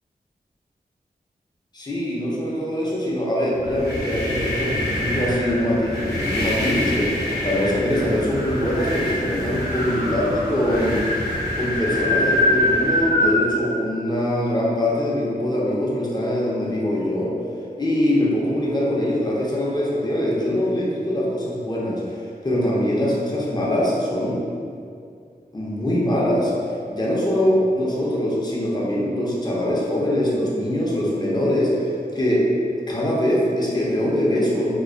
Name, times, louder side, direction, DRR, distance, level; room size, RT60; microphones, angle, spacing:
voice 1, 1.7-11.0 11.6-17.3 17.8-22.2 22.4-24.4 25.5-26.5 26.9-32.5 32.9-34.7, left 1 dB, 25° left, -5 dB, 0.5 m, -23 dB
sound 1, 3.6-13.4, left 1 dB, 85° left, 0.8 m, -25 dB
2.3 x 2.2 x 2.4 m, 2.4 s
wide cardioid pair, 65°, 16 cm